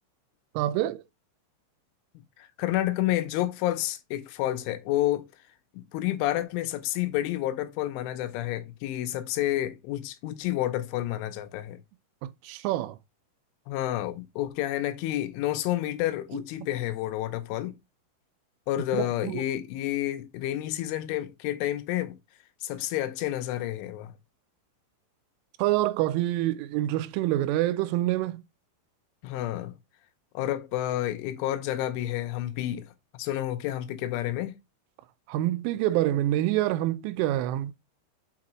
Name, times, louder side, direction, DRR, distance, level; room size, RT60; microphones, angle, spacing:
voice 1, 0.6-1.0 12.2-13.0 18.9-19.4 25.6-28.4 35.3-37.7, right 14 dB, 85° right, 3.0 m, -26 dB
voice 2, 2.4-5.3 5.7-11.8 13.7-17.8 18.7-22.2 22.6-24.1 29.2-29.7 30.3-32.9 33.2-34.6, left 14 dB, 80° left, 3.1 m, -30 dB
8.5 x 4.8 x 3.0 m
omnidirectional pair, 5.7 m